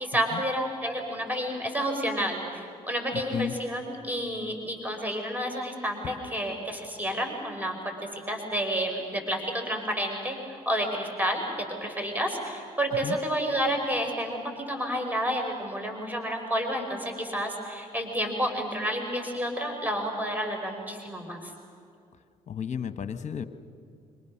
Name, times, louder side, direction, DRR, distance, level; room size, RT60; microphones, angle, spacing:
voice 1, 0.0-7.8 8.3-11.4 11.8-14.4 14.7-21.5, equal, 10° right, 2 dB, 5.7 m, -30 dB
voice 2, 3.1-3.5 6.0-6.1 13.0-13.2 22.5-23.4, left 8 dB, 40° left, 11 dB, 1.5 m, -33 dB
26.5 x 26.0 x 6.6 m, 2.3 s
figure-of-eight pair, 45°, 19 cm